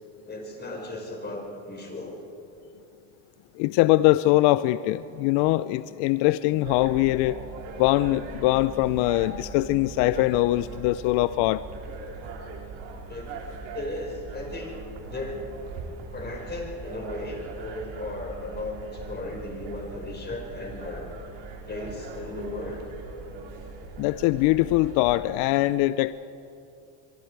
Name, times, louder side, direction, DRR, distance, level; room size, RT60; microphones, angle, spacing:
voice 1, 0.2-2.2 13.1-13.4 13.7-14.7 15.0-15.4 16.1-21.1 21.7-22.8, left 2 dB, 20° left, 1 dB, 4.8 m, -36 dB
voice 2, 3.6-7.4 7.8-11.6 24.0-26.1, left 17 dB, 65° left, 15 dB, 0.6 m, -22 dB
sound 1, 6.6-25.2, right 4 dB, 70° right, 3.2 m, -40 dB
25.0 x 22.5 x 4.7 m, 2.7 s
supercardioid pair, 110°, 45 cm